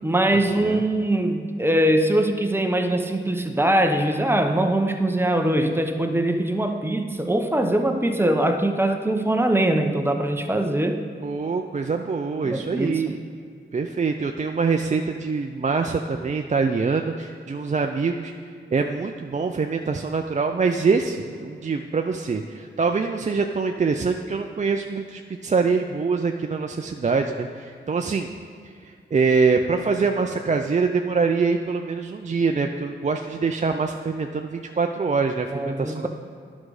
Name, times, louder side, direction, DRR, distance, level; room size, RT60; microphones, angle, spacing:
voice 1, 0.0-11.0 12.4-13.0 35.5-36.1, right 1 dB, 10° right, 5 dB, 0.8 m, -22 dB
voice 2, 11.2-13.2 13.7-18.3 18.7-28.3 28.6-36.1, right 4 dB, 35° right, 4 dB, 0.5 m, -24 dB
10.5 x 6.2 x 4.8 m, 2.2 s
cardioid pair, 65°, 21 cm